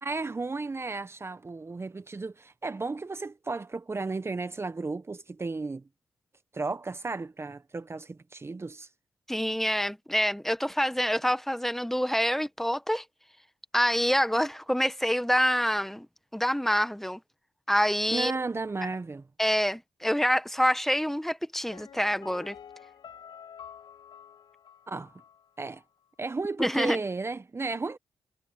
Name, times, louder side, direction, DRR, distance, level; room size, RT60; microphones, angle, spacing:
voice 1, 0.0-5.8 6.5-8.9 18.1-19.3 24.9-25.1 25.6-25.8 26.2-28.0, right 3 dB, 30° right, 1.2 m, -34 dB
voice 2, 9.3-13.0 13.7-16.1 16.3-17.2 17.7-18.3 19.4-22.6 26.6-27.0, equal, 5° left, 1.6 m, -26 dB
Piano, 21.7-25.5 25.7-25.8, left 8 dB, 65° left, 5.0 m, -49 dB
hypercardioid pair, 50°, 9 cm